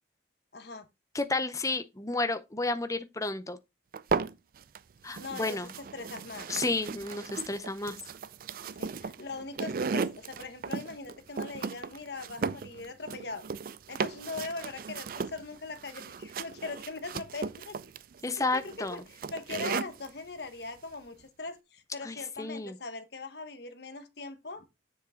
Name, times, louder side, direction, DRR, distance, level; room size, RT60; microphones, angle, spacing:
voice 1, 0.5-0.9 5.2-5.6 5.9-6.5 8.8-13.4 13.9-17.8 18.5-24.6, left 3 dB, 60° left, 1.2 m, -41 dB
voice 2, 1.1-3.6 5.0-5.7 6.5-8.0 18.2-19.0 22.0-22.8, left 3 dB, 20° left, 0.7 m, -31 dB
sound 1, 3.9-4.8 5.1-20.1, right 5 dB, 50° right, 0.4 m, -36 dB
7.3 x 6.3 x 3.8 m
head